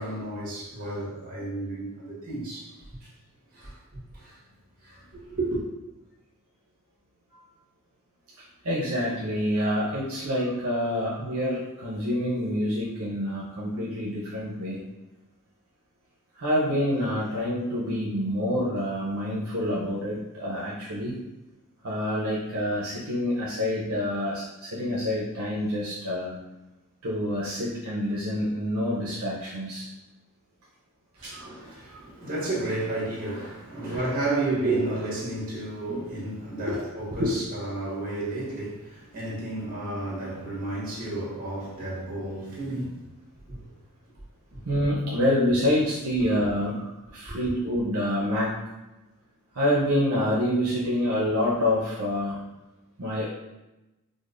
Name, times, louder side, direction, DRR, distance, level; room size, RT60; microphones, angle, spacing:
voice 1, 0.0-2.7 3.0-3.1 3.5-4.4 4.8-5.6 31.2-43.0 43.5-43.7 47.3-47.5, right 2 dB, 40° right, 1.3 m, -32 dB
voice 2, 8.4-14.8 16.3-21.1 21.8-26.3 27.0-29.9 31.2-31.5 31.9-32.0 36.6-36.8 37.1-37.4 44.6-48.6 49.5-52.4 53.0-53.3, left 1 dB, 70° right, 0.7 m, -27 dB
5.0 x 2.0 x 2.5 m
head